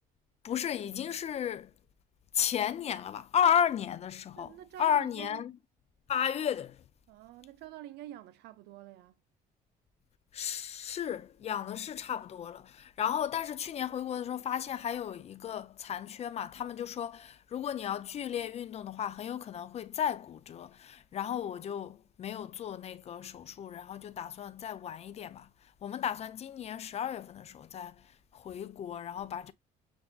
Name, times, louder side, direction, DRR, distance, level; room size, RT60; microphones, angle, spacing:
voice 1, 0.4-1.7 2.3-5.5 6.1-6.8 10.3-25.5 25.8-27.9 28.3-29.5, left 9 dB, 40° left, 0.4 m, -34 dB
voice 2, 4.4-5.5 7.1-9.2, right 13 dB, 80° right, 0.5 m, -47 dB
7.0 x 2.6 x 2.2 m
cardioid pair, 110°, 17 cm